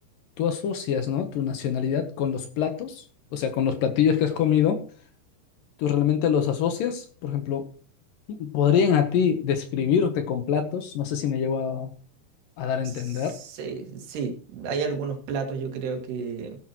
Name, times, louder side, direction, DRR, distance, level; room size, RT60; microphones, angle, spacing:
voice 1, 0.4-3.0 3.3-4.8 5.8-7.6 8.3-11.9 12.6-13.4, left 8 dB, 70° left, 7 dB, 2.4 m, -24 dB
voice 2, 12.8-16.6, right 5 dB, 85° right, 3 dB, 4.0 m, -32 dB
16.0 x 10.5 x 3.0 m, 0.42 s
omnidirectional pair, 4.7 m